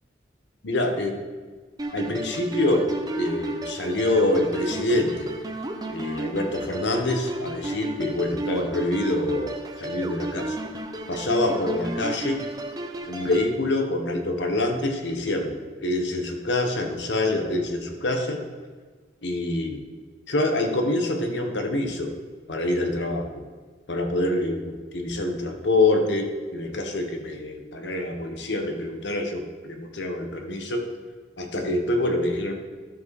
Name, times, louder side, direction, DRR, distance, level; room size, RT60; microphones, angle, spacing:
voice 1, 0.6-1.2 1.9-2.9 3.2-5.3 5.9-10.6 11.1-12.4 13.1-18.4 19.2-19.8 20.3-22.1 22.5-23.4 23.9-30.9 31.4-32.5, left 2 dB, 70° left, 4 dB, 1.1 m, -26 dB
sound 1, 1.8-13.5, right 2 dB, 20° right, 0.7 m, -33 dB
12.5 x 4.9 x 4.8 m, 1.5 s
head